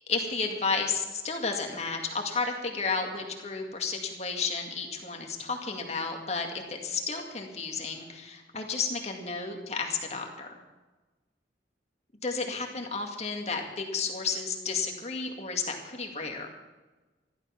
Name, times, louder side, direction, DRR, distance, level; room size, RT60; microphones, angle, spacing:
voice 1, 0.1-10.5 12.2-16.5, left 4 dB, 35° left, 2 dB, 2.0 m, -32 dB
13.5 x 12.0 x 5.9 m, 1.2 s
head